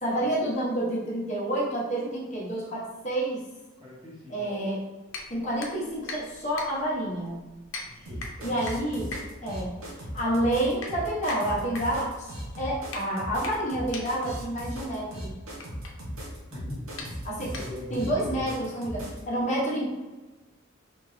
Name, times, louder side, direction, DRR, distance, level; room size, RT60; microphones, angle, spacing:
voice 1, 0.0-3.4 4.3-4.8 5.3-7.4 8.4-9.8 10.1-15.4 17.2-17.5 17.9-19.8, right 1 dB, 35° left, -5 dB, 1.1 m, -29 dB
voice 2, 3.8-4.4 8.1-8.5 16.5-16.8 17.5-18.5, left 1 dB, 25° right, -6 dB, 1.3 m, -40 dB
sound 1, 5.1-18.1, left 3 dB, 75° left, 0.6 m, -43 dB
sound 2, 8.1-19.2, equal, 90° right, 1.0 m, -38 dB
3.5 x 2.8 x 3.1 m, 1.2 s
head